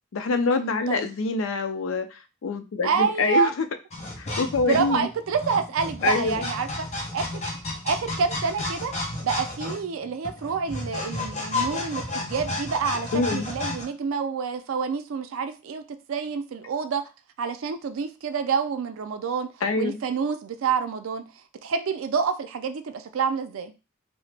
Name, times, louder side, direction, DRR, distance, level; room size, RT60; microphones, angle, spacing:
voice 1, 0.1-3.6 4.2-5.1 6.0-6.4 13.1-13.5 19.6-20.0, left 4 dB, 75° left, 8 dB, 0.4 m, -25 dB
voice 2, 2.8-3.5 4.7-6.9 7.1-7.3 7.8-8.9 9.2-17.0 17.4-19.5 19.8-21.2 21.6-23.7, right 6 dB, 75° right, 9 dB, 0.4 m, -27 dB
sound 1, 3.9-13.8, left 2 dB, 35° left, 0.7 m, -32 dB
2.8 x 2.0 x 3.2 m, 0.30 s
head